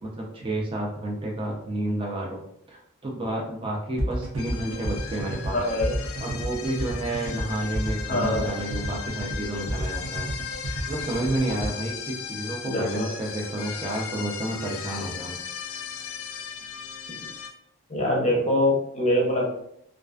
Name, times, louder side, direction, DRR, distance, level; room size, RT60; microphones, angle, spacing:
voice 1, 0.0-2.4 2.7-5.6 6.2-10.3 10.9-15.4, right 1 dB, 25° right, -2 dB, 0.4 m, -30 dB
sound 1, 4.0-11.7, right 1 dB, 85° right, 0.6 m, -31 dB
sound 2, 4.4-17.5, left 7 dB, 75° left, 0.3 m, -37 dB
voice 2, 5.5-6.0 8.1-8.6 12.6-13.1 17.9-19.5, left 1 dB, 35° left, -3 dB, 0.6 m, -24 dB
2.4 x 2.2 x 2.3 m, 0.73 s
head